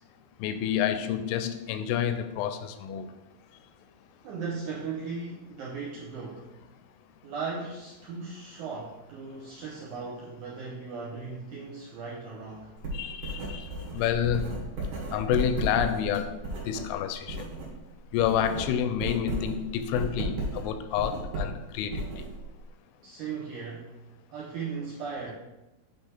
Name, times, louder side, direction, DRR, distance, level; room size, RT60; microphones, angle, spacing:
voice 1, 0.4-3.1 12.9-13.7 13.9-14.6 15.1-16.4 16.7-17.4 18.1-22.1, left 9 dB, 85° left, 9 dB, 2.5 m, -29 dB
voice 2, 4.2-6.6 7.2-12.7 23.0-24.0 24.3-25.4, right 5 dB, 80° right, -4 dB, 1.8 m, -37 dB
Writing, 12.8-17.7 18.0-22.7, right 2 dB, 60° right, 2.7 m, -34 dB
8.0 x 3.3 x 4.3 m, 1.0 s
omnidirectional pair, 4.5 m